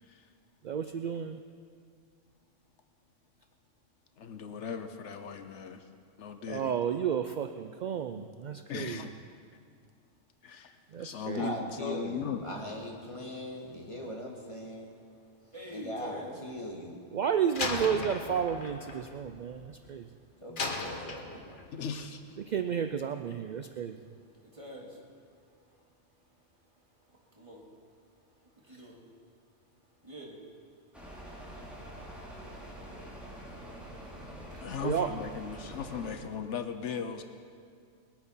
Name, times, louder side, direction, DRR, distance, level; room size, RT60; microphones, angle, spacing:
voice 1, 0.0-0.3 4.2-5.9 6.2-6.7 8.2-8.3 8.7-9.1 10.4-12.4 21.7-22.4 34.6-37.2, left 6 dB, 70° left, 8 dB, 1.0 m, -38 dB
voice 2, 0.6-1.4 6.5-9.1 10.9-11.5 17.1-20.1 22.4-24.0 28.7-28.8 34.5-35.1, right 8 dB, 65° right, 8 dB, 0.4 m, -32 dB
voice 3, 11.3-15.0 15.7-17.0 20.4-21.5, left 1 dB, 25° left, -2 dB, 2.0 m, -40 dB
voice 4, 15.5-16.4 19.6-20.1 24.4-25.3 27.1-27.7 28.1-29.0 30.0-30.4 30.9-31.0 32.3-33.4, equal, 25° right, -3 dB, 2.2 m, -47 dB
Slam, 17.6-20.0 20.6-21.8, left 3 dB, 45° left, 1.2 m, -37 dB
sound 1, 30.9-36.1, equal, ahead, 3.0 m, -45 dB
20.5 x 9.0 x 5.6 m, 2.2 s
omnidirectional pair, 1.3 m